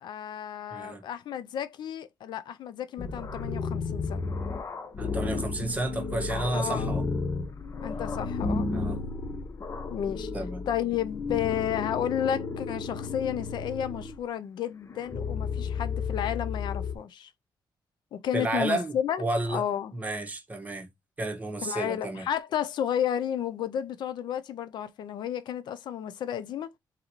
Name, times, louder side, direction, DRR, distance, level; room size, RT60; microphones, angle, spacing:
voice 1, 0.0-4.3 6.5-7.0 7.8-8.7 9.9-10.3 10.7-17.3 18.1-19.2 19.5-19.9 21.6-26.7, left 9 dB, 75° left, 0.5 m, -32 dB
voice 2, 0.7-1.0 5.0-7.0 8.7-9.0 10.3-10.6 18.3-19.6 19.9-20.9 21.2-22.2, right 2 dB, 20° right, 1.5 m, -31 dB
sound 1, 3.0-14.2 14.9-17.0, left 4 dB, 40° left, 0.8 m, -33 dB
4.1 x 3.9 x 3.0 m
cardioid pair, 100°, 8 cm